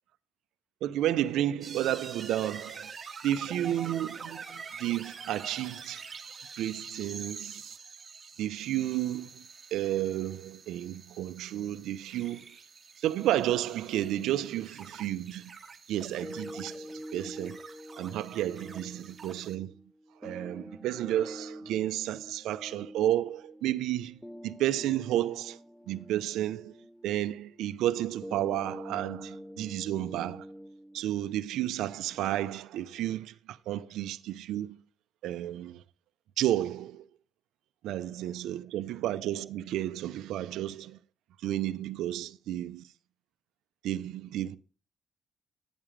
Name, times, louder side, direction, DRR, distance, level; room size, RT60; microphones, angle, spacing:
voice 1, 0.8-2.9 3.2-6.1 6.6-7.8 8.4-9.5 9.7-12.6 13.0-15.5 15.9-17.6 18.0-19.7 20.2-25.6 25.9-26.8 27.0-30.5 30.9-34.8 35.2-35.8 36.4-37.1 37.8-41.0 41.4-42.9 43.8-44.6, right 13 dB, 85° right, 0.7 m, -32 dB
sound 1, 1.6-19.5, right 5 dB, 35° right, 1.9 m, -46 dB
sound 2, 16.2-32.2, equal, ahead, 0.4 m, -46 dB
11.0 x 8.8 x 3.3 m
cardioid pair, 90°, 0 cm